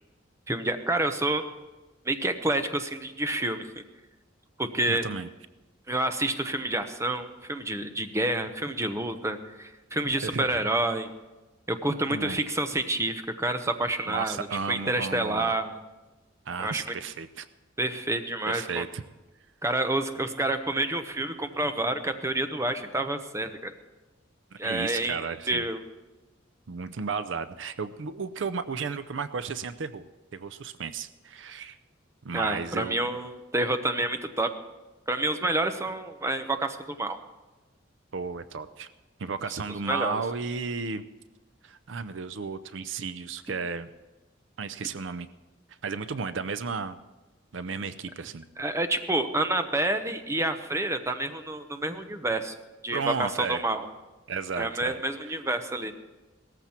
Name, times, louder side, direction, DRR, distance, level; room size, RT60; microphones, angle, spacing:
voice 1, 0.5-1.4 2.0-3.7 4.6-5.0 5.9-11.1 11.7-15.8 16.6-16.8 17.8-18.9 19.6-23.7 24.6-25.8 32.3-34.5 35.1-37.2 39.7-40.2 48.6-52.6 52.8-53.9 54.6-55.9, right 2 dB, 15° right, 8 dB, 0.8 m, -28 dB
voice 2, 4.9-5.3 10.1-10.7 12.1-12.4 14.1-15.5 16.5-17.5 18.5-19.0 24.6-25.7 26.7-30.1 30.3-31.8 32.2-33.0 38.1-38.9 39.2-41.1 41.6-43.9 44.6-45.3 45.8-47.0 47.5-48.4 52.9-53.6 54.3-55.3, right 5 dB, 75° right, 14 dB, 0.6 m, -33 dB
17.5 x 14.0 x 4.4 m, 1.2 s
head